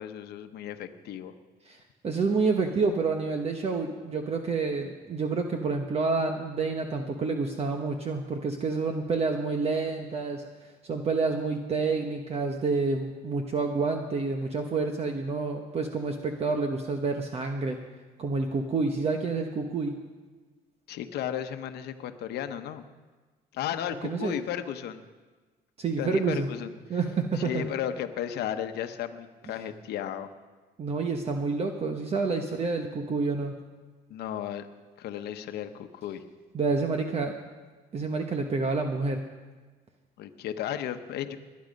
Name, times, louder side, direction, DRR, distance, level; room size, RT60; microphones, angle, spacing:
voice 1, 0.0-1.3 20.9-22.8 23.5-25.0 26.0-26.7 27.3-30.3 34.1-34.7 35.0-36.2 40.2-41.4, left 10 dB, 75° left, 9 dB, 1.0 m, -34 dB
voice 2, 1.7-10.4 10.8-17.8 18.2-19.9 24.0-24.4 25.8-26.5 26.9-27.6 30.8-33.5 36.5-37.3 37.9-39.3, right 4 dB, 35° right, 4 dB, 1.1 m, -28 dB
21.0 x 9.6 x 5.3 m, 1.3 s
cardioid pair, 110°, 17 cm